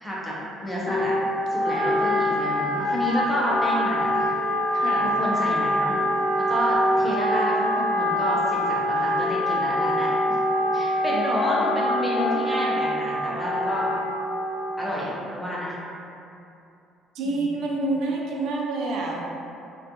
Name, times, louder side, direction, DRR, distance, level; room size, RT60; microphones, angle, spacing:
voice 1, 0.0-0.4 0.6-1.2 1.5-4.3 5.0-6.0 6.5-10.2 10.7-13.9 14.8-15.7 17.2-17.5, equal, 5° left, -7 dB, 0.5 m, -29 dB
Wind instrument woodwind instrument, 0.8-14.9, left 1 dB, 70° left, 0.4 m, -24 dB
voice 2, 4.7-5.1 11.1-11.2 11.6-11.8 17.1-19.3, right 2 dB, 70° right, -2 dB, 0.3 m, -28 dB
2.4 x 2.2 x 2.7 m, 2.7 s
cardioid pair, 160°, 0 cm